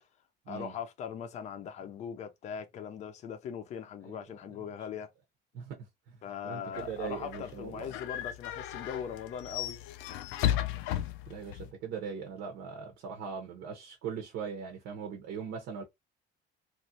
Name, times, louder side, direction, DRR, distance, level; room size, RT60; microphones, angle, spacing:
voice 1, 0.5-5.1 6.2-9.8, left 7 dB, 35° left, 0.5 m, -40 dB
voice 2, 6.4-7.9 10.7-10.8 11.3-15.8, right 6 dB, 60° right, 0.8 m, -40 dB
sound 1, 6.7-11.7, left 12 dB, 85° left, 0.5 m, -35 dB
3.0 x 2.5 x 2.6 m
cardioid pair, 175°, 20 cm